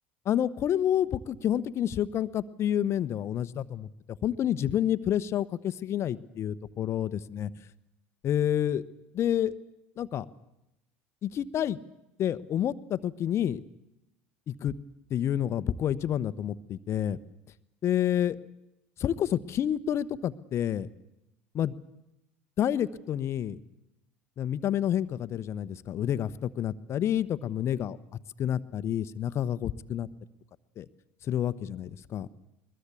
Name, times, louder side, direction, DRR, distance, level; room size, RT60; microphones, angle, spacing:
voice 1, 0.2-7.5 8.2-8.8 9.1-9.5 10.0-10.3 11.2-11.8 12.2-13.6 14.5-14.7 15.1-17.2 17.8-18.4 19.0-20.9 21.5-21.7 22.6-23.6 24.4-28.0 28.4-30.1 30.8-30.9 31.2-32.3, left 10 dB, 45° left, 15 dB, 1.0 m, -29 dB
21.5 x 21.0 x 8.3 m, 0.89 s
hypercardioid pair, 75°, 6 cm